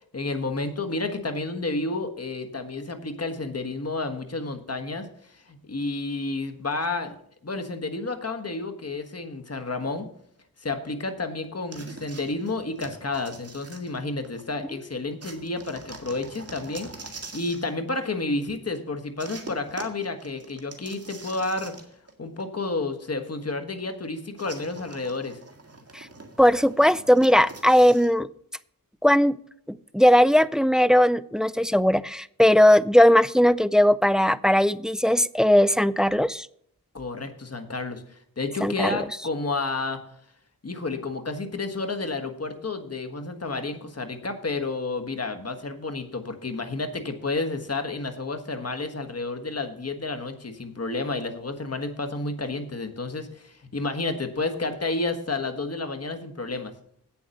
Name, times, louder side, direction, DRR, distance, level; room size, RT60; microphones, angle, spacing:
voice 1, 0.1-7.1 7.4-10.1 10.6-21.7 22.2-25.4 36.9-40.0 40.6-56.7, left 3 dB, 45° left, 7 dB, 1.5 m, -31 dB
sound 1, 11.7-14.4 15.2-17.7 19.2-22.1 22.4-22.5 24.4-28.1, right 3 dB, 45° right, 1.8 m, -44 dB
voice 2, 26.4-28.3 29.0-29.4 29.7-36.5 38.6-39.0, equal, ahead, 17 dB, 0.3 m, -19 dB
8.5 x 7.2 x 6.5 m, 0.67 s
cardioid pair, 55°, 35 cm